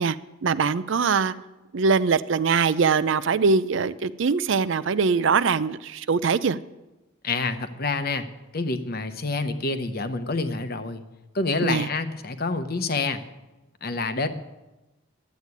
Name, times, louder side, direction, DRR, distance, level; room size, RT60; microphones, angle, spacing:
voice 1, 0.0-1.3 1.7-6.6 11.6-11.9, right 5 dB, 60° right, 15 dB, 0.5 m, -22 dB
voice 2, 7.2-8.3 8.5-11.0 11.3-13.2 13.8-14.3, left 3 dB, 45° left, 9 dB, 0.9 m, -27 dB
11.5 x 8.2 x 9.5 m, 1.1 s
head